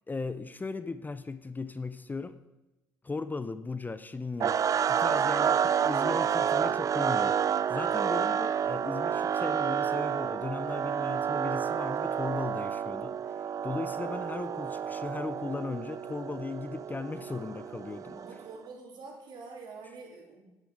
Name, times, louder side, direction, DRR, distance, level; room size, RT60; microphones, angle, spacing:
voice 1, 0.1-2.4 3.0-5.6 5.8-7.4 7.7-13.2 13.6-18.2, left 3 dB, 20° left, 0.6 m, -37 dB
sound 1, 4.4-18.5, right 8 dB, 40° right, 0.4 m, -29 dB
voice 2, 18.1-20.5, right 4 dB, 60° right, 2.9 m, -46 dB
9.7 x 8.4 x 4.7 m
hypercardioid pair, 55°, 9 cm